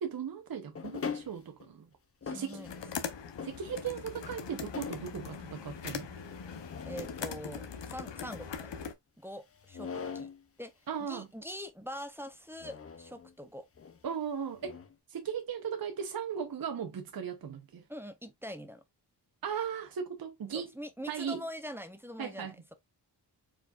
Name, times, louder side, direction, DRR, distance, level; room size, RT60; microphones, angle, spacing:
voice 1, 0.0-1.9 2.3-2.6 3.4-6.1 10.9-11.3 14.0-14.8 15.1-17.8 19.4-20.7 21.1-21.4 22.2-22.5, right 7 dB, 55° right, 0.8 m, -37 dB
sound 1, 0.7-1.7 2.2-3.0 3.4-4.1 4.5-5.2 6.3-7.2 9.5-10.4 12.6-13.3 13.8-14.0 14.6-14.9, left 6 dB, 35° left, 0.5 m, -41 dB
voice 2, 2.3-2.7 6.9-8.9 9.2-10.3 10.6-10.7 11.0-13.6 17.9-18.8 20.5-22.7, equal, 5° right, 0.7 m, -43 dB
sound 2, 2.6-8.9, left 6 dB, 80° left, 0.9 m, -41 dB
4.7 x 4.4 x 2.4 m
wide cardioid pair, 120°, 43 cm